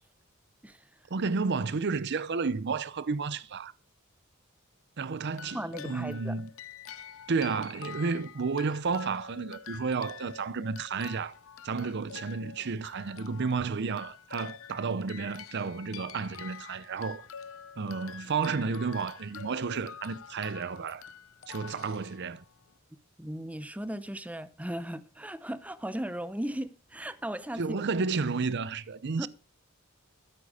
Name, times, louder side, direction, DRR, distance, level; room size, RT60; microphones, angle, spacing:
voice 1, 1.1-3.7 5.0-5.6 5.8-6.5 7.3-11.4 11.6-17.3 17.8-21.0 21.5-22.4 27.5-29.3, right 4 dB, 55° right, 0.6 m, -31 dB
sound 1, 5.3-22.7, left 7 dB, 70° left, 0.7 m, -47 dB
voice 2, 5.5-6.4 23.2-27.8 29.2-29.3, right 1 dB, 5° right, 0.7 m, -37 dB
12.5 x 10.0 x 4.9 m
head